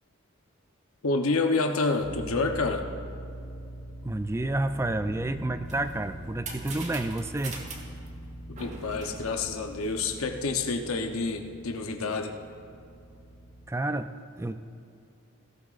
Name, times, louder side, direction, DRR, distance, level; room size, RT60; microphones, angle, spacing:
voice 1, 1.0-2.8 8.5-12.3, left 3 dB, 90° left, 4 dB, 0.8 m, -28 dB
sound 1, 2.0-13.7, right 1 dB, 45° left, 3.3 m, -43 dB
voice 2, 4.0-7.6 13.7-14.6, right 2 dB, 15° right, 10 dB, 0.3 m, -30 dB
sound 2, 5.4-10.4, right 3 dB, 35° right, 1.3 m, -43 dB
18.0 x 15.0 x 2.5 m, 2.6 s
head